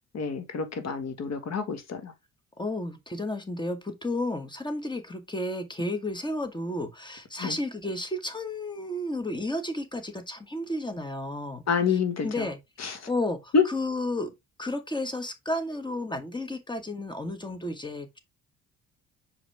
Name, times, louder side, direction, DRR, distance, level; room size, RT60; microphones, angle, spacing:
voice 1, 0.1-2.1 7.4-7.6 11.7-12.3 12.8-13.0 13.5-13.6, left 5 dB, 60° left, 1.9 m, -27 dB
voice 2, 2.6-12.6 12.8-14.3 14.6-18.2, left 1 dB, 15° left, 1.6 m, -32 dB
6.2 x 5.0 x 3.5 m
cardioid pair, 90°, 30 cm